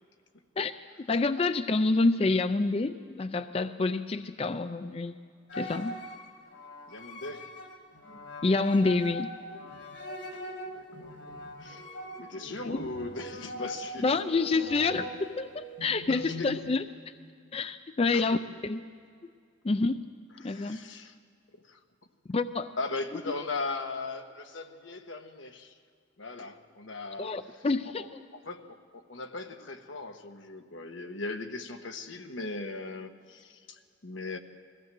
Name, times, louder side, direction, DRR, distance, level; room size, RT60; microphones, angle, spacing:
voice 1, 1.1-5.1 5.6-5.9 8.4-9.3 12.6-12.8 14.0-16.9 17.5-18.4 18.6-18.8 19.6-20.1 20.4-20.8 22.3-22.8 27.2-28.0, left 3 dB, 30° left, 11 dB, 0.4 m, -27 dB
sound 1, 5.5-16.7, equal, 60° left, 2.1 m, -42 dB
voice 2, 6.9-7.4 10.7-11.3 11.6-11.9 12.2-14.2 16.1-16.5 18.1-18.4 20.4-21.1 21.5-21.8 22.8-25.7 26.2-28.1 28.3-34.4, left 3 dB, 85° left, 6 dB, 1.3 m, -39 dB
21.5 x 15.5 x 7.6 m, 2.2 s
head